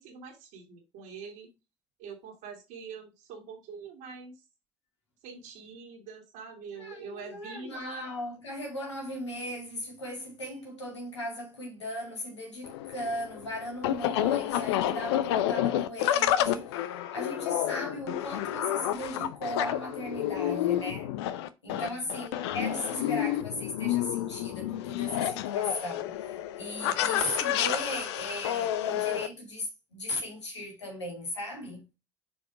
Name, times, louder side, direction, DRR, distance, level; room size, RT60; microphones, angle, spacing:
voice 1, 0.0-1.5 2.0-4.4 5.2-8.0 21.8-22.0, right 5 dB, 65° right, 2.1 m, -45 dB
voice 2, 6.8-16.8 17.1-21.1 21.6-31.9, left 1 dB, 90° left, 2.3 m, -37 dB
sound 1, 12.6-29.3, left 12 dB, 75° left, 0.6 m, -30 dB
6.3 x 4.7 x 4.9 m
figure-of-eight pair, 55°, 14 cm